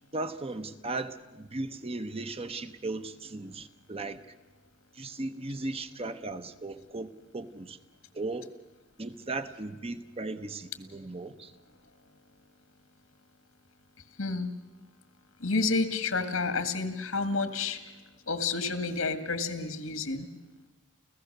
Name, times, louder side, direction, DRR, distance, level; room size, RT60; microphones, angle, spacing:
voice 1, 0.1-4.2 4.9-7.8 8.1-8.5 9.0-11.5, right 2 dB, 30° right, 0.9 m, -37 dB
voice 2, 14.2-14.5 15.4-17.8 18.3-20.3, left 3 dB, 80° left, 1.9 m, -30 dB
30.0 x 15.5 x 6.7 m
head